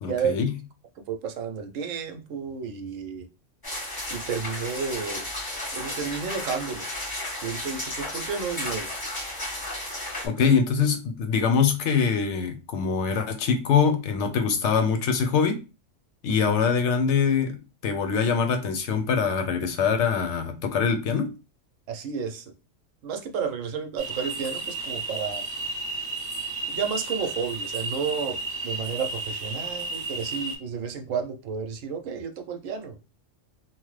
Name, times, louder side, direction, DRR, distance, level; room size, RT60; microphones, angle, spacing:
voice 1, 0.0-0.5 10.2-15.6 16.2-17.6 17.8-21.3, left 6 dB, 70° left, 0.8 m, -23 dB
voice 2, 1.1-3.3 4.1-5.3 5.7-6.9 7.4-8.9 16.4-16.5 21.9-22.5 23.0-25.4 26.7-28.4 28.6-33.0, right 6 dB, 80° right, 1.0 m, -31 dB
sound 1, 3.6-10.3, left 1 dB, 25° left, 0.6 m, -33 dB
sound 2, 24.0-30.5, right 3 dB, 25° right, 0.5 m, -33 dB
2.9 x 2.0 x 3.1 m
omnidirectional pair, 1.3 m